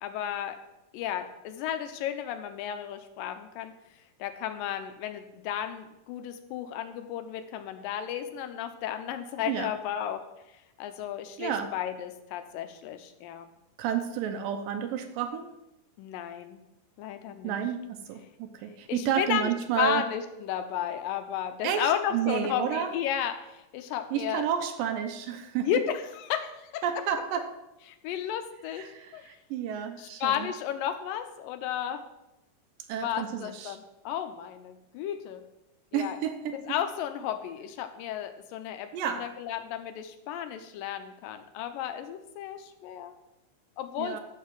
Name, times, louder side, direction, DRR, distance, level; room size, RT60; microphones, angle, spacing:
voice 1, 0.0-0.6 0.9-3.7 4.2-10.3 10.8-13.5 16.0-16.6 17.0-17.6 18.9-19.5 19.8-24.4 25.6-27.0 27.9-29.2 30.0-32.0 33.0-35.5 35.9-36.2 36.5-43.1 43.8-44.2, left 10 dB, 90° left, 8 dB, 2.4 m, -33 dB
voice 2, 11.4-11.7 13.8-15.5 17.4-20.0 21.6-22.9 24.1-25.7 26.8-27.5 28.7-30.5 32.9-33.8 35.9-36.8 38.9-39.3 44.0-44.2, right 9 dB, 85° right, 7 dB, 2.5 m, -31 dB
12.0 x 7.5 x 4.7 m, 0.92 s
omnidirectional pair, 3.9 m